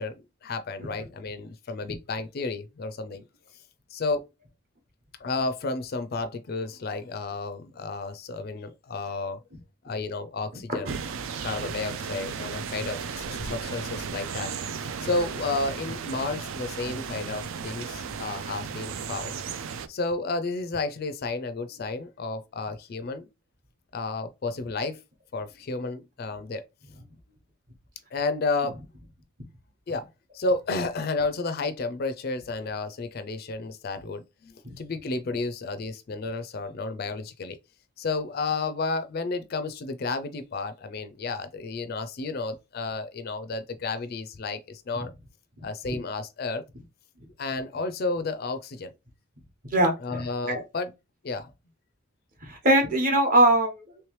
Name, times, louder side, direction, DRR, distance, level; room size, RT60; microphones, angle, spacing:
voice 1, 0.0-3.2 3.9-4.2 5.2-9.4 9.8-11.0 11.4-19.3 19.9-23.3 23.9-25.0 25.3-26.6 28.1-28.8 29.9-30.1 30.3-37.6 38.0-45.1 45.6-46.6 47.4-48.9 50.0-50.9 51.2-51.5, left 3 dB, 45° left, 0.4 m, -32 dB
sound 1, 10.8-19.9, right 6 dB, 65° right, 0.4 m, -35 dB
voice 2, 49.7-50.6 52.4-54.0, right 1 dB, 40° right, 1.1 m, -23 dB
3.2 x 3.1 x 3.1 m
head